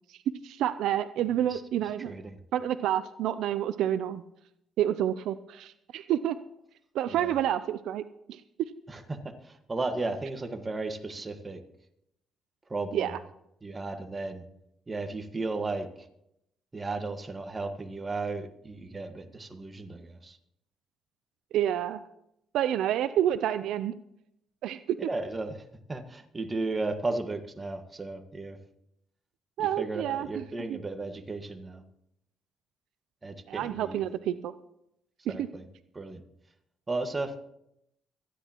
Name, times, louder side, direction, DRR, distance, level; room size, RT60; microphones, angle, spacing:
voice 1, 0.4-2.1 2.5-4.2 4.8-6.4 6.9-8.0 8.3-8.4 12.9-13.2 21.5-22.0 22.5-23.9 24.6-25.0 29.6-30.4 30.7-30.8 33.5-34.5 35.3-35.5, right 11 dB, 85° right, 12 dB, 0.5 m, -28 dB
voice 2, 2.0-2.4 7.1-7.4 8.9-11.6 12.7-13.2 13.6-14.4 14.9-16.1 16.7-20.4 25.0-25.6 25.9-28.6 29.8-31.8 33.2-34.0 35.3-35.6 35.9-36.2 36.9-37.4, right 3 dB, 25° right, 6 dB, 1.6 m, -35 dB
26.5 x 10.0 x 3.0 m, 0.78 s
cardioid pair, 90°, 0 cm